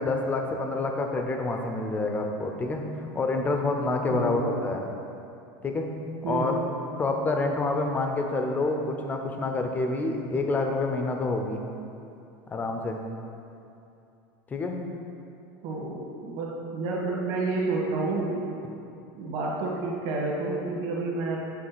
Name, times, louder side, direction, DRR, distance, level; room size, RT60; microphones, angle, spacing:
voice 1, 0.0-4.9 5.6-5.9 6.2-6.5 7.0-11.6 12.5-13.0 14.5-14.8, left 2 dB, 15° left, 3 dB, 0.5 m, -28 dB
voice 2, 15.6-18.4 19.1-21.6, right 3 dB, 50° right, -2 dB, 1.5 m, -29 dB
7.7 x 3.3 x 6.1 m, 2.7 s
supercardioid pair, 155°, 11 cm